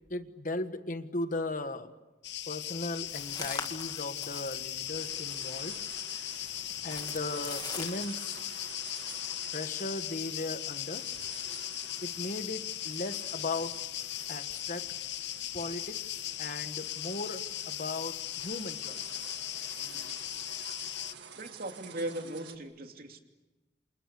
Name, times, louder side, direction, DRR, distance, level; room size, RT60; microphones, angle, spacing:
voice 1, 0.1-1.9 2.5-5.8 6.8-8.4 9.5-11.1 12.0-13.8 14.3-14.9 15.5-19.4, left 2 dB, 50° left, 10 dB, 1.5 m, -37 dB
sound 1, 2.2-21.1, left 13 dB, 70° left, 0.8 m, -38 dB
sound 2, 3.1-5.8 6.4-8.1, left 4 dB, 25° left, 2.2 m, -42 dB
sound 3, 4.9-22.6, right 6 dB, 75° right, 2.0 m, -50 dB
voice 2, 21.4-23.2, right 1 dB, 55° right, 4 dB, 2.8 m, -38 dB
28.5 x 28.0 x 7.0 m, 1.1 s
head